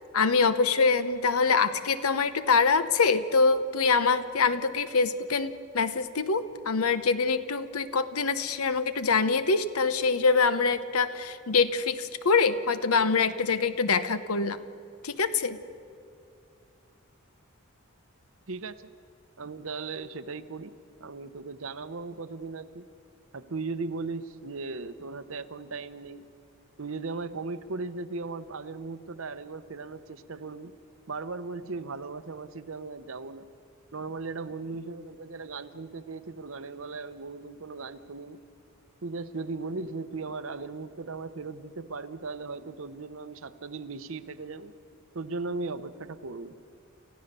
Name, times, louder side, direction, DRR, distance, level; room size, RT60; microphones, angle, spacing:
voice 1, 0.1-14.6 15.0-15.6, left 4 dB, 75° left, 12 dB, 0.9 m, -24 dB
voice 2, 18.5-18.9 19.4-20.7 21.0-22.8 23.3-26.2 26.8-30.7 31.1-33.4 33.9-38.4 39.0-44.7 45.1-46.6, right 3 dB, 65° right, 12 dB, 0.8 m, -37 dB
29.5 x 15.0 x 6.8 m, 2.6 s
head